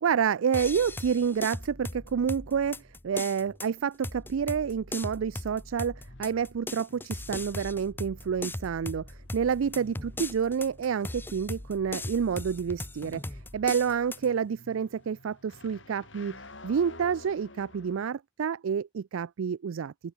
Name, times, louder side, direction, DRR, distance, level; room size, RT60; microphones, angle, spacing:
voice 1, 0.0-16.4 16.6-19.9, right 7 dB, 75° right, 0.4 m, -29 dB
sound 1, 0.5-14.3, left 2 dB, 10° left, 0.6 m, -39 dB
sound 2, 3.1-18.1, left 2 dB, 60° left, 6.3 m, -53 dB
open air
head